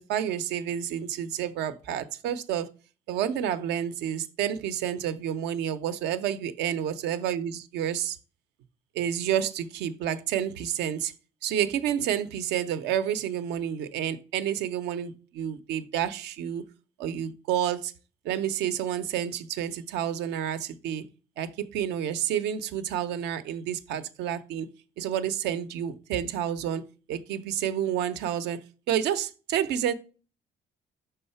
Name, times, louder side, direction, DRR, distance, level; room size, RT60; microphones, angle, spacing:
voice 1, 0.0-2.7 3.1-8.2 8.9-11.1 11.4-16.6 17.0-17.9 18.2-21.0 21.4-24.7 25.0-26.8 27.1-29.9, right 10 dB, 85° right, 0.7 m, -29 dB
5.6 x 3.7 x 5.6 m
cardioid pair, 110°, 17 cm